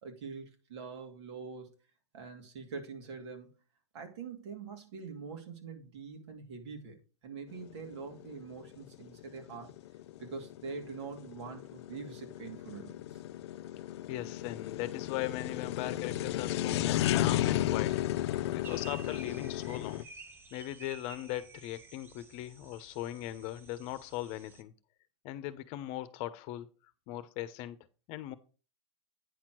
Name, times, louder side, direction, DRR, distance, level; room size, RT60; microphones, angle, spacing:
voice 1, 0.0-1.7 2.1-3.6 3.9-7.0 7.2-9.7 10.2-13.2, right 5 dB, 70° right, 2.5 m, -44 dB
sound 1, 7.5-20.0, left 13 dB, 65° left, 0.5 m, -34 dB
voice 2, 14.1-18.0 18.5-20.1 20.5-24.7 25.2-26.7 27.1-27.8 28.1-28.4, left 14 dB, 45° left, 0.9 m, -39 dB
sound 2, 18.6-24.6, right 4 dB, 15° right, 0.8 m, -52 dB
9.3 x 4.4 x 6.2 m
hypercardioid pair, 135°, 15 cm